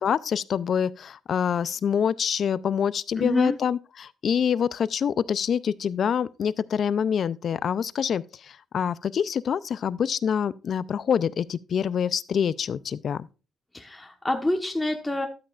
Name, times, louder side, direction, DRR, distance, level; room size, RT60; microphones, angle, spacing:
voice 1, 0.0-8.2 8.7-13.3, left 7 dB, 55° left, 0.4 m, -26 dB
voice 2, 3.1-3.6 13.7-15.3, left 1 dB, 10° left, 1.2 m, -27 dB
12.0 x 8.6 x 2.4 m
cardioid pair, 90°, 0 cm